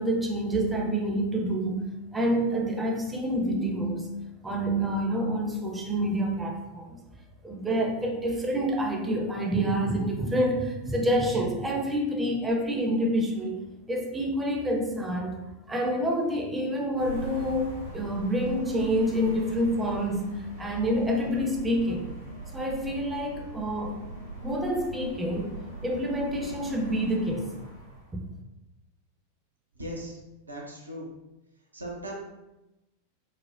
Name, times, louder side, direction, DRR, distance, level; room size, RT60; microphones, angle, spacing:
voice 1, 0.0-1.8 2.1-4.1 4.4-7.0 7.4-15.4 15.7-22.1 22.5-24.0 24.4-27.5, equal, 10° right, 1 dB, 0.5 m, -27 dB
sound 1, 17.0-28.1, right 3 dB, 85° left, 1.2 m, -41 dB
voice 2, 29.8-30.2 30.5-31.1 31.7-32.2, right 1 dB, 80° right, -2 dB, 0.6 m, -38 dB
4.1 x 2.0 x 2.5 m, 0.99 s
figure-of-eight pair, 90°, 0 cm